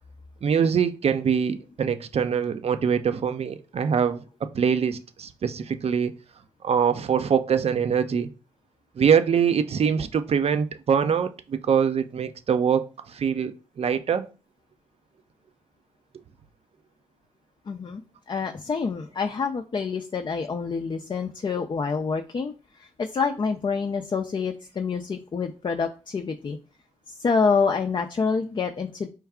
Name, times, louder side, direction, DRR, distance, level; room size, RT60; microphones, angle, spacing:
voice 1, 0.4-4.2 4.5-6.1 6.6-8.3 9.0-14.3, right 7 dB, 50° right, 0.5 m, -23 dB
voice 2, 17.7-26.6 27.1-29.1, left 5 dB, 35° left, 0.5 m, -27 dB
4.5 x 2.3 x 3.5 m
supercardioid pair, 45°, 13 cm